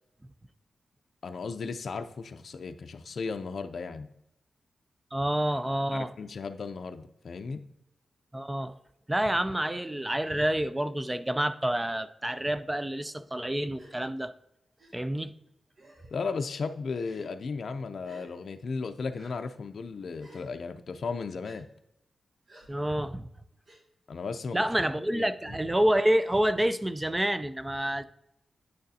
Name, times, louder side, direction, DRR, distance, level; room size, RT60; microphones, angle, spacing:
voice 1, 1.2-4.1 5.9-7.6 16.1-21.7 24.1-24.6 25.1-25.6, left 4 dB, 70° left, 7 dB, 0.5 m, -35 dB
voice 2, 5.1-6.1 8.3-8.7 9.1-14.3 14.9-15.3 22.7-23.3 24.5-28.0, right 1 dB, 15° right, 12 dB, 0.4 m, -28 dB
Gasp, 13.7-13.9 14.8-14.9 15.8-16.2 17.0-17.3 18.0-18.3 19.1-19.3 20.2-20.5 21.4-21.6 22.5-22.7 23.7-23.8 24.7-24.9, equal, 55° right, 2.0 m, -52 dB
9.1 x 6.4 x 2.7 m, 0.81 s
wide cardioid pair, 85°, 0 cm